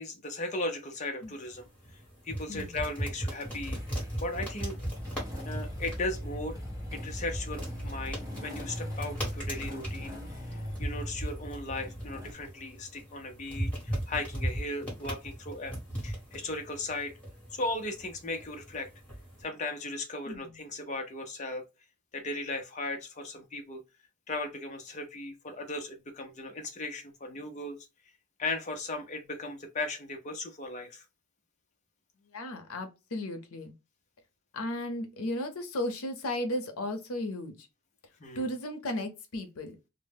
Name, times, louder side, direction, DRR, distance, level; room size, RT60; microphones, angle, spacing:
voice 1, 0.0-1.7 2.2-4.8 5.4-6.6 6.9-15.7 16.0-17.1 17.5-18.9 19.4-21.6 22.1-23.8 24.3-27.9 28.4-31.0 38.2-38.5, left 2 dB, 35° left, 0.5 m, -37 dB
sound 1, 1.2-19.4, right 1 dB, 5° left, 1.1 m, -39 dB
voice 2, 2.5-2.8 20.3-20.6 32.3-33.7 34.5-37.7 38.4-39.8, left 1 dB, 80° left, 0.6 m, -35 dB
Motorcycle / Engine starting, 3.5-12.3, equal, 15° right, 0.6 m, -39 dB
2.0 x 2.0 x 3.3 m
head